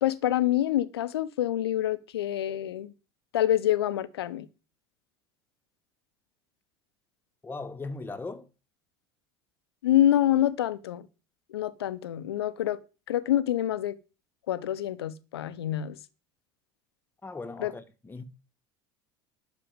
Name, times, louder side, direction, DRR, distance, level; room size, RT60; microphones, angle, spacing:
voice 1, 0.0-2.9 3.3-4.5 9.8-11.0 11.5-12.8 13.1-14.0 14.5-16.0 17.6-17.7, left 12 dB, 80° left, 1.1 m, -26 dB
voice 2, 7.4-8.5 17.2-18.2, left 3 dB, 15° left, 1.7 m, -38 dB
11.5 x 6.7 x 8.0 m
hypercardioid pair, 75°, 13 cm